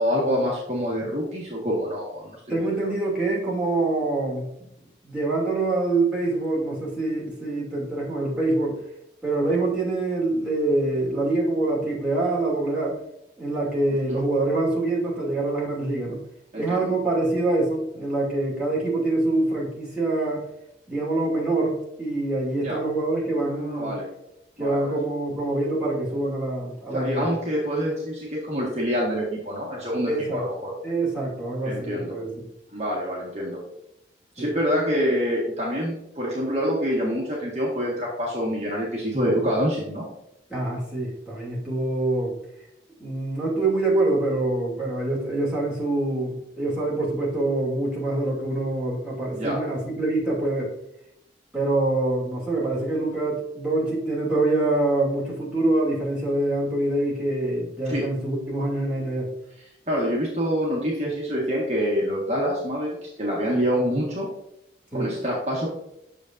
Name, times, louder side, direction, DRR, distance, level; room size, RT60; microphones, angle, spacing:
voice 1, 0.0-2.9 14.1-14.2 16.5-16.9 22.6-22.8 23.4-24.1 24.6-24.9 26.9-30.7 31.6-32.2 32.7-33.6 34.3-40.0 49.3-49.6 57.9-58.0 59.9-64.3 64.9-65.7, equal, 40° right, -4 dB, 1.5 m, -26 dB
voice 2, 2.5-4.5 5.0-8.8 9.2-13.0 13.4-16.2 16.5-20.4 20.9-23.9 24.6-27.3 30.1-30.4 30.8-32.3 34.4-34.5 40.5-42.3 43.0-50.7 51.5-59.3 64.9-65.1, right 2 dB, 5° right, -6 dB, 2.6 m, -25 dB
8.4 x 6.7 x 2.6 m, 0.82 s
head